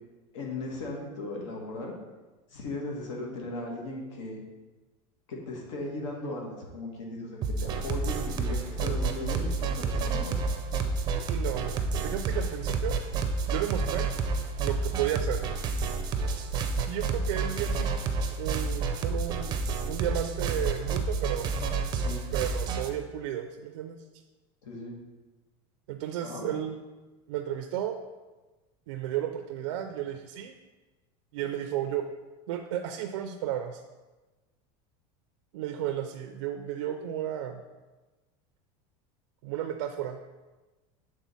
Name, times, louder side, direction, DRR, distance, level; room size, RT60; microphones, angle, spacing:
voice 1, 0.3-1.9 2.5-4.4 5.3-10.4 22.0-22.2 24.6-24.9 26.2-26.5, left 2 dB, 80° left, -1 dB, 1.5 m, -37 dB
sound 1, 7.4-22.9, right 4 dB, 25° right, 0.5 m, -30 dB
voice 2, 11.1-13.0 13.5-14.1 14.6-15.4 16.9-18.0 18.4-21.5 22.3-24.0 25.9-26.8 27.3-28.0 28.9-30.5 31.3-32.1 32.5-33.8 35.5-37.6 39.4-40.3, right 11 dB, 90° right, 5 dB, 0.5 m, -33 dB
7.3 x 3.7 x 4.1 m, 1.2 s
supercardioid pair, 160°, 15 cm